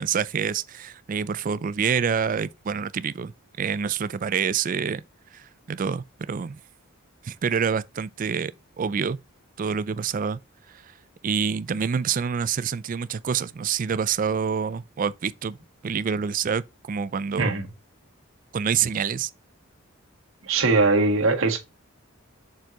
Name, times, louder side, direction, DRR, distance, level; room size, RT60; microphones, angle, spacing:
voice 1, 0.0-3.3 3.6-5.0 5.3-6.6 7.2-9.2 9.6-10.4 10.7-10.9 11.2-15.6 15.8-17.5 18.5-19.3, right 6 dB, 40° right, 0.4 m, -27 dB
voice 2, 20.4-21.6, right 3 dB, 70° right, 1.8 m, -21 dB
6.7 x 4.5 x 3.9 m
head